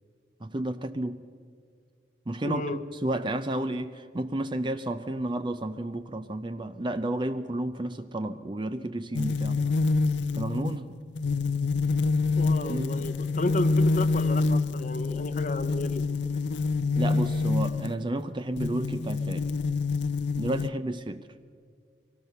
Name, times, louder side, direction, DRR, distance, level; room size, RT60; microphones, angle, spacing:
voice 1, 0.4-1.2 2.3-9.6 10.3-11.0 12.7-13.1 17.0-19.5 20.4-21.3, right 1 dB, 25° right, 9 dB, 0.5 m, -31 dB
voice 2, 2.4-2.8 12.4-16.0, left 2 dB, 45° left, 8 dB, 0.9 m, -32 dB
sound 1, 9.1-18.0 18.6-20.7, left 3 dB, 75° left, 0.5 m, -27 dB
23.5 x 18.0 x 6.8 m, 2.1 s
head